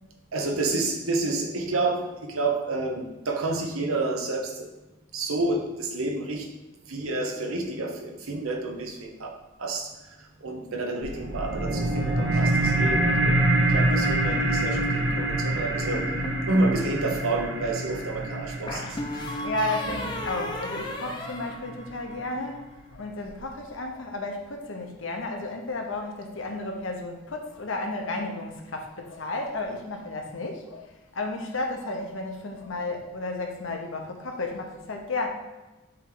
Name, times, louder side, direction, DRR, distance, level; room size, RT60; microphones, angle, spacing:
voice 1, 0.3-4.7 5.1-6.5 6.9-9.3 9.6-13.4 13.7-16.1 16.5-19.0, right 2 dB, 80° right, 2 dB, 1.0 m, -29 dB
sound 1, 11.0-22.0, right 2 dB, 55° right, 0.8 m, -26 dB
sound 2, 15.9-16.8 18.7-22.3, left 1 dB, 20° left, 0.6 m, -34 dB
voice 2, 19.4-35.3, left 2 dB, 65° left, 3 dB, 0.9 m, -33 dB
7.7 x 3.2 x 3.9 m, 1.1 s
head